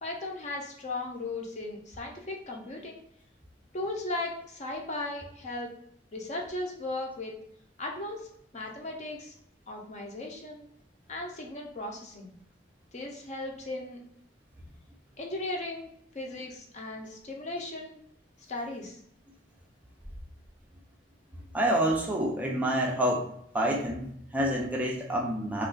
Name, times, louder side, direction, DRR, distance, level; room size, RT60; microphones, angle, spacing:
voice 1, 0.0-3.0 3.7-5.7 6.1-7.3 7.8-8.3 8.5-9.4 9.7-10.6 11.1-12.3 12.9-14.0 15.2-15.9 16.1-18.0 18.5-19.0, left 2 dB, 40° left, 1 dB, 0.6 m, -36 dB
voice 2, 21.5-23.3 23.5-25.7, right 1 dB, 10° right, -1 dB, 0.4 m, -28 dB
2.4 x 2.3 x 3.7 m, 0.70 s
head